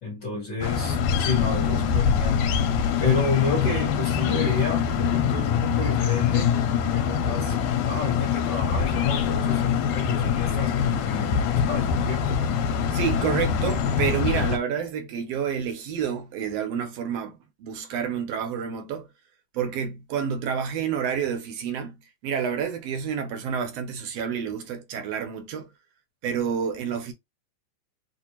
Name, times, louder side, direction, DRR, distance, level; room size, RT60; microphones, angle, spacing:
voice 1, 0.0-2.4 3.0-6.5 6.8-12.5, left 6 dB, 50° left, 1.6 m, -29 dB
sound 1, 0.6-14.6, left 7 dB, 75° left, 2.0 m, -24 dB
voice 2, 12.9-19.1 19.5-25.7 26.2-27.1, right 7 dB, 70° right, 1.6 m, -29 dB
6.4 x 2.5 x 2.9 m
omnidirectional pair, 3.5 m